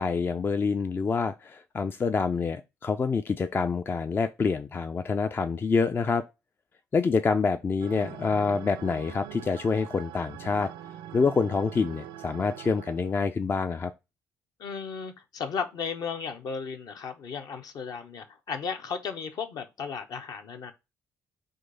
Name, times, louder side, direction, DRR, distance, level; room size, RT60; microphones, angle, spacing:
voice 1, 0.0-6.2 6.9-10.7 11.1-13.9, left 4 dB, 25° left, 0.4 m, -27 dB
sound 1, 7.8-13.2, right 11 dB, 60° right, 0.4 m, -43 dB
voice 2, 14.6-20.7, left 6 dB, 50° left, 0.7 m, -35 dB
3.7 x 2.6 x 3.7 m
figure-of-eight pair, 45°, 8 cm